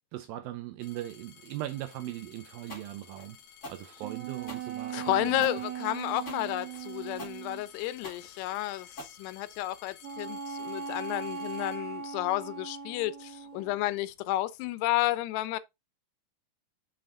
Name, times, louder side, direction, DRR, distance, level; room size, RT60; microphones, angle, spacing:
voice 1, 0.1-3.4 3.7-5.5, right 14 dB, 80° right, 2.1 m, -39 dB
sound 1, 0.8-12.5 13.3-13.8, left 8 dB, 65° left, 2.7 m, -54 dB
sound 2, 2.7-9.8, left 1 dB, 40° left, 1.0 m, -46 dB
sound 3, 4.0-7.6 10.0-13.9, right 7 dB, 65° right, 1.6 m, -39 dB
voice 2, 4.9-15.6, left 16 dB, 85° left, 2.8 m, -31 dB
6.9 x 5.7 x 3.8 m
omnidirectional pair, 4.7 m